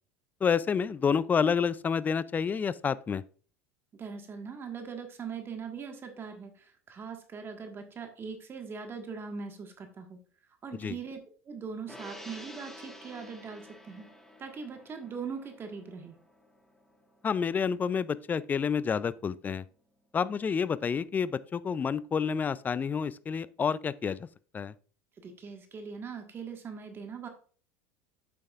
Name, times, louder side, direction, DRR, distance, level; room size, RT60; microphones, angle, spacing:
voice 1, 0.4-3.2 10.8-10.9 17.2-19.6 20.1-24.3 24.5-24.7, left 6 dB, 25° left, 0.4 m, -29 dB
voice 2, 3.9-10.2 10.6-14.1 14.4-16.2 25.2-27.3, right 5 dB, 30° right, 1.5 m, -41 dB
Gong, 11.9-18.5 18.8-19.0, left 1 dB, 5° left, 1.5 m, -51 dB
8.6 x 6.9 x 2.4 m
hypercardioid pair, 90°, 7 cm